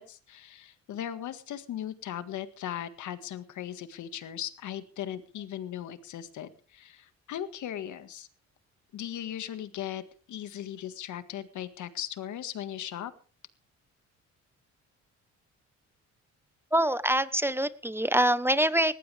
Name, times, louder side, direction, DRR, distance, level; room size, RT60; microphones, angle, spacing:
voice 1, 0.0-8.3 8.9-10.0 10.3-13.1, left 11 dB, 75° left, 11 dB, 1.8 m, -38 dB
voice 2, 16.7-18.9, right 1 dB, 10° right, 15 dB, 1.0 m, -25 dB
19.5 x 15.5 x 3.5 m, 0.37 s
cardioid pair, 90°, 30 cm